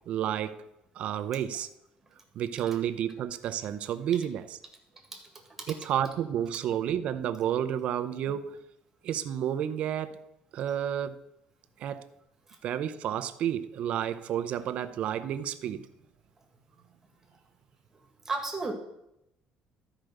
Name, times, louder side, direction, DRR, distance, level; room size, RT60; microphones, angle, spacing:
voice 1, 0.1-0.6 0.9-1.7 2.3-4.4 5.7-8.6 9.0-10.2 10.5-11.2 11.8-12.1 12.6-15.9, right 10 dB, 50° right, 11 dB, 0.7 m, -31 dB
voice 2, 18.2-18.7, right 3 dB, 10° right, 3 dB, 1.8 m, -34 dB
12.0 x 5.0 x 6.5 m, 0.83 s
cardioid pair, 175°, 3 cm